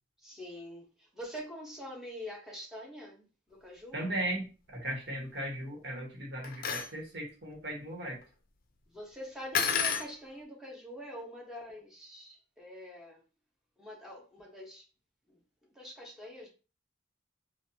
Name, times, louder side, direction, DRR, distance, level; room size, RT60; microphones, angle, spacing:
voice 1, 0.2-4.0 8.9-13.2 13.8-14.8 15.3-15.4 15.7-16.5, equal, 5° right, 1.0 m, -45 dB
voice 2, 3.9-8.2, right 1 dB, 65° right, 1.4 m, -37 dB
sound 1, 6.4-6.9 9.5-10.1, left 7 dB, 50° left, 0.5 m, -30 dB
4.1 x 2.5 x 2.8 m
head